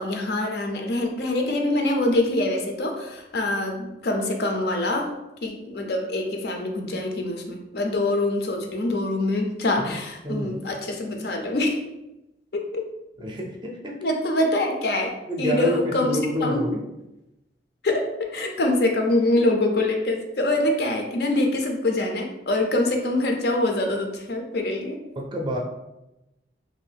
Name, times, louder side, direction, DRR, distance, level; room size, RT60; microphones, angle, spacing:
voice 1, 0.0-5.1 5.4-11.8 12.5-12.8 14.0-16.6 17.8-25.0, left 1 dB, 60° left, 3 dB, 0.5 m, -25 dB
voice 2, 9.8-10.6 13.2-14.2 15.2-16.9 25.2-25.6, equal, 25° right, 0 dB, 0.5 m, -28 dB
2.9 x 2.7 x 3.4 m, 0.93 s
head